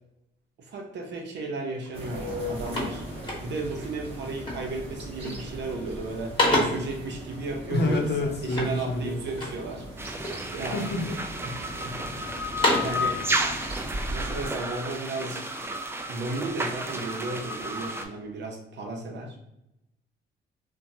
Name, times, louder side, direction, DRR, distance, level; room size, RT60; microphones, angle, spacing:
voice 1, 0.6-3.1 3.4-8.0 8.4-9.9 10.4-10.8 11.4-13.2 14.1-15.7 16.1-19.4, right 2 dB, 65° right, 2 dB, 0.7 m, -34 dB
sound 1, 1.8-2.0 2.3-3.8 4.4-4.8 5.1-5.6 5.9-7.0 8.5-9.7 10.2-10.8 11.3-12.0 12.4-13.1, left 1 dB, 25° left, 1.1 m, -29 dB
sound 2, 1.9-14.5, equal, 30° right, 0.9 m, -39 dB
voice 2, 7.7-9.2 10.7-11.2, left 2 dB, 55° left, 1 dB, 0.7 m, -27 dB
sound 3, 10.0-18.1, equal, 10° right, 0.3 m, -32 dB
2.9 x 2.2 x 2.6 m, 0.87 s
cardioid pair, 90°, 20 cm